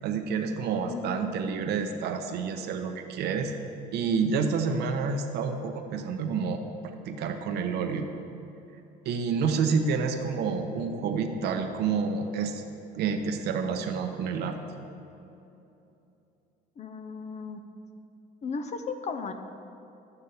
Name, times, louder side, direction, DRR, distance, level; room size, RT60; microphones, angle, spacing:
voice 1, 0.0-3.5 3.9-8.1 9.0-12.6 13.0-14.6, right 5 dB, 75° right, 5 dB, 0.9 m, -29 dB
voice 2, 0.7-1.1 16.8-17.6 18.4-19.3, left 5 dB, 40° left, 7 dB, 0.8 m, -35 dB
11.5 x 8.3 x 4.2 m, 2.8 s
cardioid pair, 110°, 17 cm